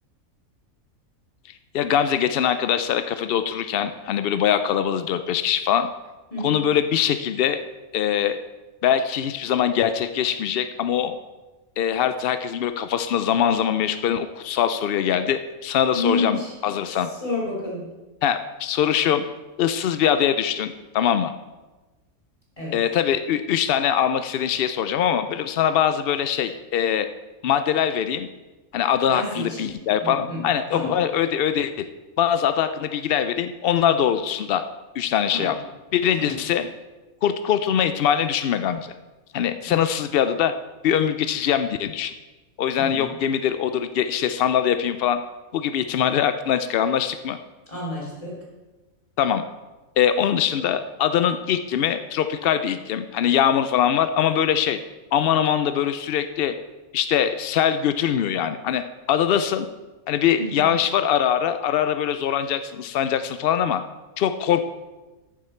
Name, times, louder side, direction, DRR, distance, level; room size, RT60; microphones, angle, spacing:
voice 1, 1.7-5.9 6.4-7.6 7.9-8.4 8.8-11.2 11.8-17.1 18.2-19.2 19.6-21.3 22.7-27.1 27.4-28.3 28.7-31.8 32.2-34.6 35.0-35.6 35.9-36.7 37.2-38.9 39.3-40.5 40.8-42.1 42.6-45.2 45.5-47.4 49.2-49.4 50.0-54.8 55.1-56.5 56.9-58.8 59.1-59.7 60.1-63.8 64.2-64.6, left 9 dB, 75° left, 10 dB, 0.5 m, -22 dB
voice 2, 6.3-6.6 15.9-16.5 17.1-17.8 22.6-22.7 29.1-29.7 30.0-30.4 30.7-30.9 35.3-35.5 36.1-36.3 39.6-39.7 42.8-43.1 47.7-48.3 60.4-60.7, left 2 dB, 25° left, -4 dB, 3.5 m, -29 dB
14.0 x 7.4 x 4.4 m, 1.2 s
omnidirectional pair, 1.5 m